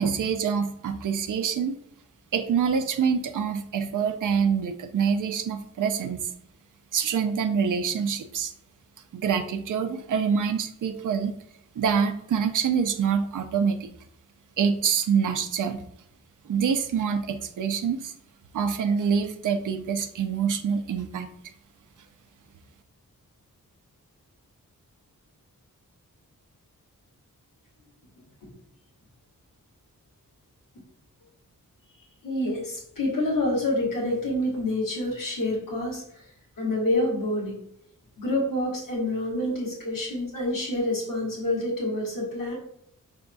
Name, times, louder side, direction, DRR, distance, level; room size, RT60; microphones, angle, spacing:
voice 1, 0.0-1.8 2.3-6.2 6.9-8.5 9.1-11.4 11.8-13.8 14.6-15.8 16.5-18.1 18.5-21.3, right 6 dB, 65° right, 7 dB, 0.5 m, -26 dB
voice 2, 32.2-36.0 36.6-37.6 38.2-42.6, left 1 dB, 70° left, -3 dB, 1.5 m, -27 dB
5.2 x 3.5 x 2.3 m, 0.73 s
wide cardioid pair, 155°, 34 cm